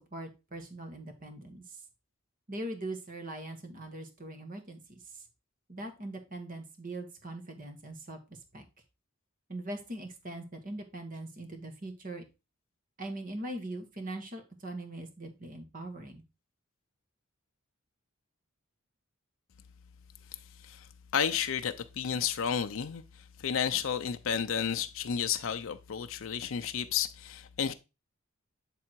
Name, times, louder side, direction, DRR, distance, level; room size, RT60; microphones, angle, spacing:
voice 1, 0.0-1.8 2.5-4.8 5.1-5.2 5.7-8.2 8.5-8.6 9.5-12.2 13.0-16.2, right 1 dB, 40° right, 1.3 m, -41 dB
voice 2, 21.1-27.7, left 8 dB, 65° left, 0.5 m, -32 dB
7.7 x 3.6 x 4.4 m
head